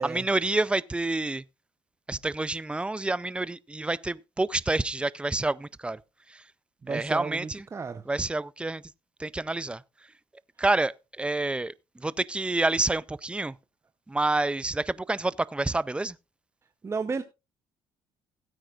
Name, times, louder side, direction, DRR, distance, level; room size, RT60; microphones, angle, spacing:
voice 1, 0.0-1.4 2.1-6.0 6.3-6.4 6.9-7.6 8.1-8.8 9.2-9.8 10.6-13.5 14.1-16.2, right 2 dB, 10° right, 0.4 m, -28 dB
voice 2, 6.8-8.0 16.8-17.2, right 4 dB, 25° right, 0.8 m, -33 dB
16.5 x 9.0 x 2.4 m
cardioid pair, 90°, 10 cm